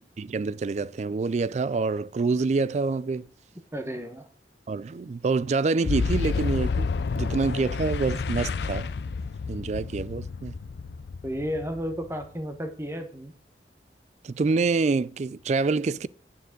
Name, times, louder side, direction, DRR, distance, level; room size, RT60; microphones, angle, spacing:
voice 1, 0.2-3.3 4.7-6.9 7.2-8.9 9.5-10.6 14.2-16.1, right 4 dB, 40° right, 0.3 m, -26 dB
voice 2, 3.7-4.3 11.2-13.3, equal, 15° right, 1.2 m, -32 dB
Boom, 5.8-12.4, left 4 dB, 70° left, 0.4 m, -30 dB
9.4 x 9.2 x 3.8 m
head